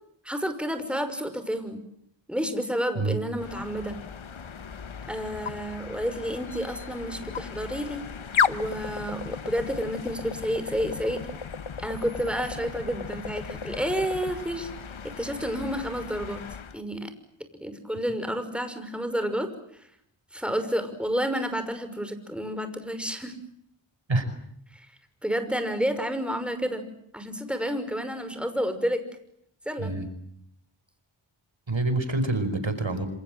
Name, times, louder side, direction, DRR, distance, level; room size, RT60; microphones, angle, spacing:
voice 1, 0.2-1.8 2.3-4.0 5.1-8.1 8.5-11.2 11.8-14.7 15.0-16.4 16.7-17.1 17.6-19.9 20.3-23.3 24.7-24.9 25.2-26.9 27.1-29.0 29.7-29.9, equal, ahead, 9 dB, 5.9 m, -30 dB
sound 1, 3.4-16.8, left 6 dB, 70° left, 1.2 m, -34 dB
voice 2, 31.7-33.1, right 2 dB, 65° right, 10 dB, 5.3 m, -26 dB
27.5 x 27.0 x 7.9 m, 0.72 s
cardioid pair, 40°, 49 cm